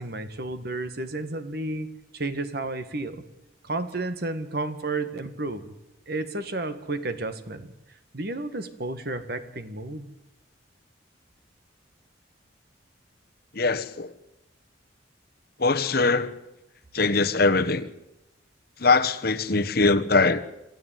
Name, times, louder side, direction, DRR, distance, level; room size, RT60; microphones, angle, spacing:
voice 1, 0.0-1.9 2.1-3.2 3.6-5.7 6.1-7.7 8.1-10.1, right 2 dB, 55° right, 1.8 m, -32 dB
voice 2, 13.5-14.1 15.6-16.3 16.9-17.9 18.8-20.4, left 3 dB, 55° left, 1.3 m, -22 dB
27.0 x 14.5 x 9.3 m
head